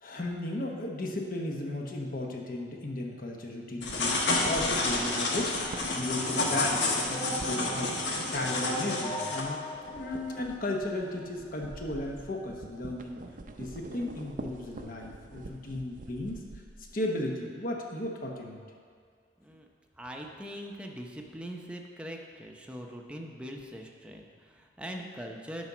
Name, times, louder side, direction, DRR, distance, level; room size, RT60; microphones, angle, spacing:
voice 1, 0.0-9.6 9.9-13.2 13.6-16.4 16.9-18.6, left 1 dB, 55° left, 1 dB, 1.1 m, -35 dB
sound 1, 3.8-9.4, left 2 dB, 90° left, 1.2 m, -30 dB
sound 2, 3.8-9.3 9.5-17.0, right 2 dB, 50° right, 0.5 m, -46 dB
sound 3, 7.1-11.3, equal, 30° left, 2.3 m, -39 dB
voice 2, 20.0-25.7, equal, 5° right, 1 dB, 0.7 m, -42 dB
10.0 x 4.0 x 6.1 m, 2.1 s
head